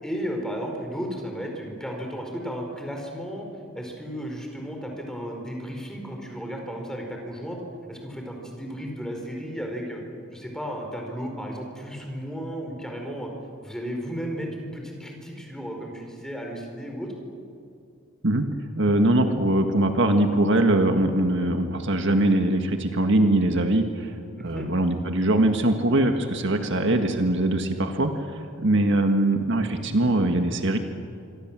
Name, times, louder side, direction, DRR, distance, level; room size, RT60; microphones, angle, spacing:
voice 1, 0.0-3.5 3.7-7.6 7.9-10.0 10.3-13.3 13.6-17.1 24.4-24.7, equal, 5° left, 2 dB, 4.9 m, -34 dB
voice 2, 18.8-24.1 24.4-30.8, right 1 dB, 60° right, 5 dB, 1.8 m, -22 dB
26.5 x 25.0 x 7.6 m, 2.5 s
head